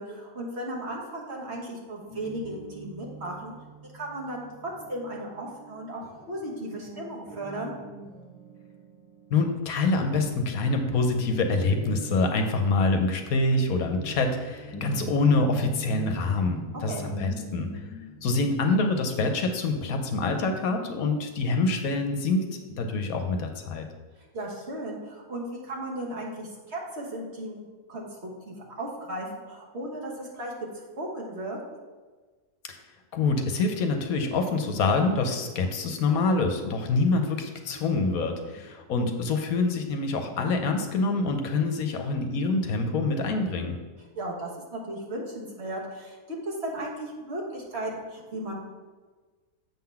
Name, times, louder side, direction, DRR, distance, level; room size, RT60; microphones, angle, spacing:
voice 1, 0.0-3.5 3.9-4.4 4.9-6.0 6.3-7.7 16.9-17.1 24.3-31.6 38.4-38.6 44.1-48.6, right 1 dB, 45° right, -2 dB, 1.4 m, -36 dB
Guitar, 2.1-9.8 10.1-20.5, right 2 dB, 15° left, 1.6 m, -43 dB
voice 2, 9.3-17.7 18.2-23.9 32.7-32.8 33.1-43.8, left 3 dB, 70° left, 5 dB, 1.1 m, -26 dB
7.5 x 3.8 x 5.7 m, 1.4 s
omnidirectional pair, 1.7 m